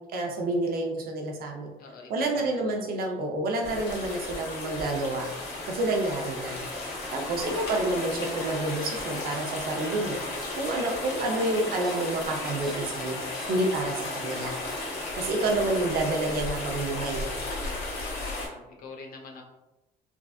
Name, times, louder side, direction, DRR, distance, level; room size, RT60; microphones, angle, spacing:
voice 1, 0.1-1.7 2.1-5.3 5.7-6.6 7.1-10.2 10.5-13.2 13.5-14.5 15.1-17.3, right 2 dB, 60° right, 1 dB, 0.7 m, -29 dB
voice 2, 1.8-2.8 10.9-11.2 18.2-19.4, left 3 dB, 60° left, 1 dB, 0.8 m, -46 dB
sound 1, 3.6-18.5, left 2 dB, 80° left, 1.2 m, -35 dB
sound 2, 5.2-17.2, equal, ahead, 0.3 m, -45 dB
3.5 x 2.4 x 2.4 m, 1.0 s
cardioid pair, 110°, 17 cm